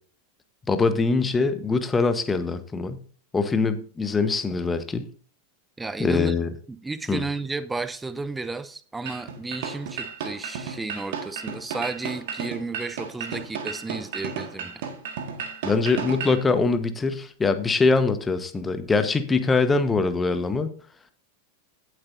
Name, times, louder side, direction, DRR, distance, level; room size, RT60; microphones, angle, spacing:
voice 1, 0.7-3.0 3.3-5.1 6.0-6.5 7.1-7.2 15.6-20.7, left 4 dB, 15° left, 10 dB, 1.1 m, -23 dB
voice 2, 5.8-6.3 6.7-14.9, right 3 dB, 10° right, 13 dB, 0.8 m, -33 dB
sound 1, 9.1-16.4, right 6 dB, 55° right, 1.9 m, -33 dB
18.0 x 7.9 x 2.7 m, 0.43 s
figure-of-eight pair, 90°, 0 cm